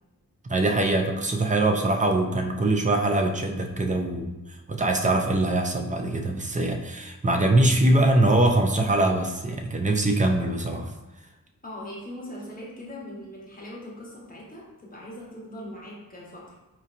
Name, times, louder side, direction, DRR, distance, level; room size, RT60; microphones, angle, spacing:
voice 1, 0.4-4.4 4.7-10.9, right 2 dB, 20° right, 4 dB, 0.4 m, -23 dB
voice 2, 11.6-16.5, left 1 dB, 25° left, -5 dB, 1.2 m, -40 dB
4.3 x 2.8 x 2.5 m, 1.1 s
wide cardioid pair, 65°, 35 cm